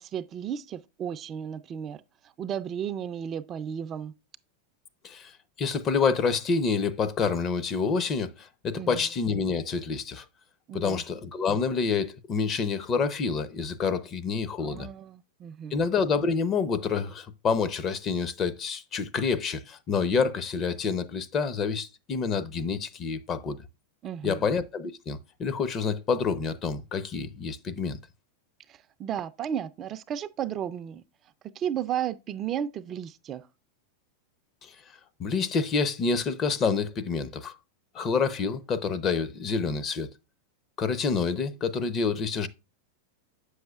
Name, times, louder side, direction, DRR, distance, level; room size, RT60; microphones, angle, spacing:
voice 1, 0.0-2.0 2.4-4.1 8.7-9.0 10.7-11.0 14.6-15.8 24.0-24.5 28.7-31.0 31.6-33.5, right 9 dB, 35° right, 0.4 m, -34 dB
voice 2, 5.6-10.3 10.7-14.9 15.7-23.6 24.2-28.0 34.6-34.7 35.2-37.5 37.9-40.1 40.8-42.5, left 5 dB, 35° left, 0.7 m, -28 dB
7.6 x 6.3 x 2.4 m
hypercardioid pair, 105°, 0 cm